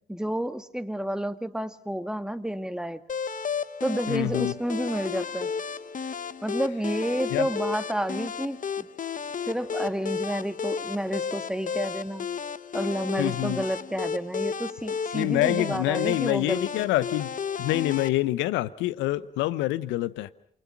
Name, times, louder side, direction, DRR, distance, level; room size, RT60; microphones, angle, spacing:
voice 1, 0.1-3.0 3.8-5.5 6.4-8.9 9.5-12.3 12.7-16.7, right 1 dB, 5° right, 1.9 m, -30 dB
sound 1, 3.1-18.1, left 6 dB, 45° left, 1.0 m, -33 dB
voice 2, 4.1-4.5 7.3-7.5 13.2-13.6 15.1-17.3 17.6-20.3, left 16 dB, 75° left, 0.9 m, -26 dB
sound 2, 4.2-6.8, right 1 dB, 15° left, 4.1 m, -52 dB
28.0 x 25.5 x 6.0 m
hypercardioid pair, 40°, 19 cm